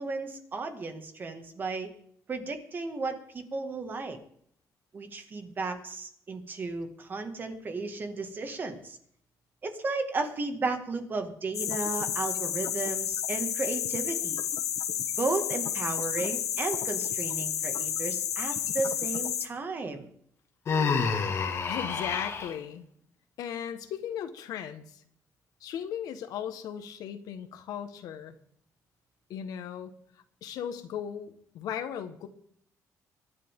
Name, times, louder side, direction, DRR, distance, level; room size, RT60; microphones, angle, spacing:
voice 1, 0.0-2.0 2.3-4.2 4.9-9.0 9.6-14.4 15.2-20.1, right 3 dB, 35° right, 6 dB, 2.0 m, -34 dB
sound 1, 11.5-19.5, left 9 dB, 65° left, 1.0 m, -31 dB
Human voice, 20.7-22.5, left 5 dB, 45° left, 2.0 m, -28 dB
voice 2, 21.7-22.8 23.4-25.0 25.6-28.3 29.3-29.9 30.4-32.3, left 9 dB, 90° left, 9 dB, 1.5 m, -37 dB
23.5 x 10.5 x 3.7 m, 0.65 s
cardioid pair, 145°, 6 cm